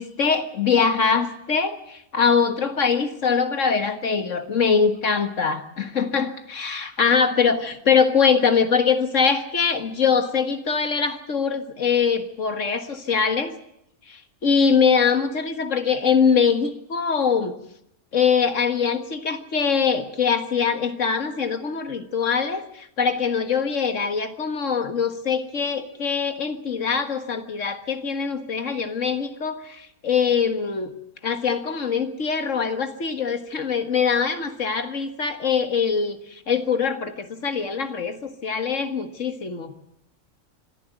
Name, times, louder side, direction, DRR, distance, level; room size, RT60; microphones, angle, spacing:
voice 1, 0.0-13.5 14.1-17.6 18.1-30.9 31.2-39.7, left 6 dB, 60° left, 9 dB, 2.0 m, -23 dB
25.5 x 14.0 x 9.4 m, 0.76 s
omnidirectional pair, 1.5 m